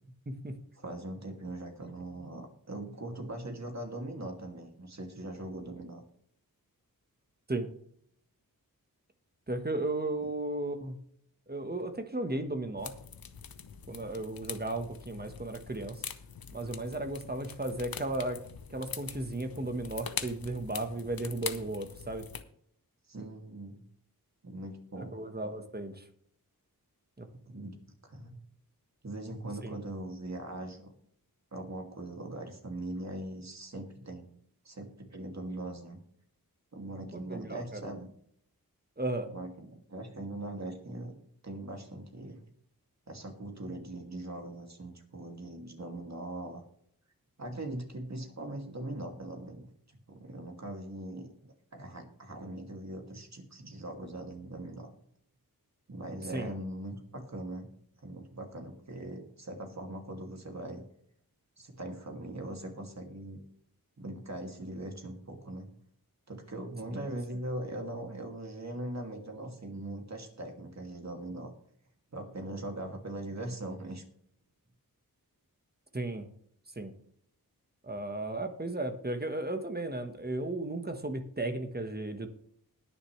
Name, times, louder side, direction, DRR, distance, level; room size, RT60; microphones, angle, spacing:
voice 1, 0.3-0.6 7.5-7.7 9.5-11.0 11.5-12.9 13.9-16.0 16.5-18.4 18.7-22.2 25.0-26.0 27.2-27.3 29.6-29.7 37.1-37.9 39.0-39.3 56.3-56.5 66.9-67.1 75.9-76.3 76.8-76.9 77.8-82.3, right 2 dB, 25° right, 6 dB, 1.4 m, -35 dB
voice 2, 0.8-6.0 10.2-10.3 23.1-23.8 24.4-25.2 27.5-27.8 28.0-28.4 29.0-30.9 31.5-34.3 34.6-36.0 36.7-38.1 39.3-41.2 41.4-42.4 43.1-46.6 47.4-49.7 50.1-54.9 55.9-57.7 58.0-60.8 61.6-63.4 64.0-65.7 66.3-71.5 72.1-74.0, right 1 dB, 45° right, 2 dB, 2.5 m, -41 dB
sound 1, 12.8-22.4, left 7 dB, 70° left, 0.9 m, -43 dB
20.5 x 6.8 x 3.3 m, 0.66 s
wide cardioid pair, 65°, 37 cm